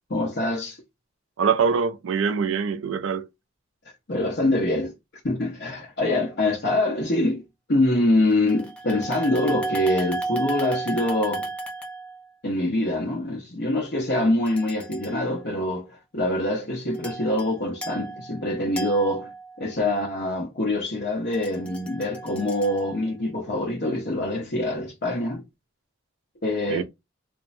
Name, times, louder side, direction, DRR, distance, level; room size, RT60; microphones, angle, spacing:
voice 1, 0.1-0.8 4.1-4.9 5.2-7.4 7.7-11.5 12.4-25.4 26.4-26.8, left 1 dB, 55° left, 0.8 m, -25 dB
voice 2, 1.4-3.3 26.7-26.8, right 6 dB, 85° right, 0.4 m, -24 dB
sound 1, 8.3-12.3 14.5-15.3 16.9-17.5 17.8-19.7 21.3-23.0, right 2 dB, 5° left, 0.5 m, -34 dB
3.2 x 2.1 x 2.5 m
head